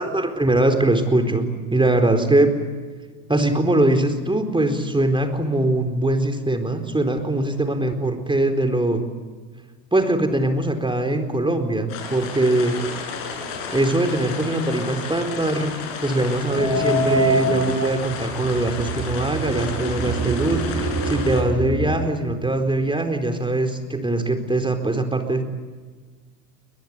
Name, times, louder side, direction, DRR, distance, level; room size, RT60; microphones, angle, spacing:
voice 1, 0.0-2.6 3.3-9.0 9.9-12.7 13.7-15.7 16.0-25.4, right 2 dB, 10° right, 6 dB, 4.3 m, -22 dB
sound 1, 11.9-21.4, left 5 dB, 65° left, 7.2 m, -33 dB
sound 2, 16.5-22.0, right 1 dB, 25° right, 6.2 m, -25 dB
22.0 x 21.5 x 9.6 m, 1.5 s
hypercardioid pair, 80°, 49 cm